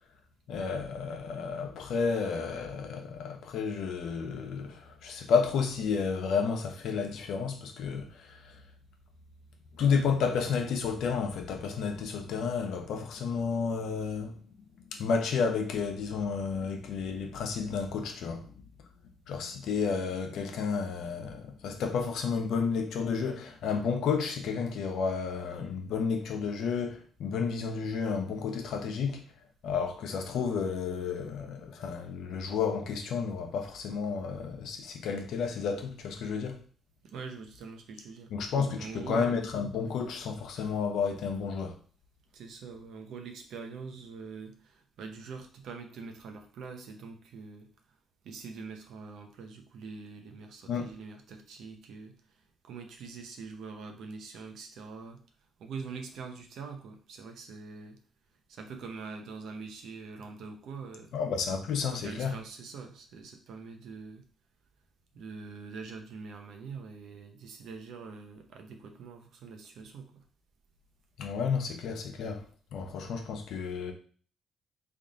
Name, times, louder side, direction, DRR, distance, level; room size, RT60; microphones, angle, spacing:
voice 1, 0.5-8.6 9.7-14.3 14.9-18.5 19.3-29.2 29.6-36.6 38.3-41.7 50.7-50.9 61.1-62.3 71.2-72.5 72.7-73.9, left 5 dB, 80° left, 0.7 m, -31 dB
voice 2, 37.0-39.3 42.3-47.7 48.2-55.2 55.6-58.0 58.5-61.1 61.9-64.2 65.1-70.2, right 5 dB, 75° right, 0.7 m, -44 dB
3.5 x 2.5 x 3.8 m
cardioid pair, 90°, 0 cm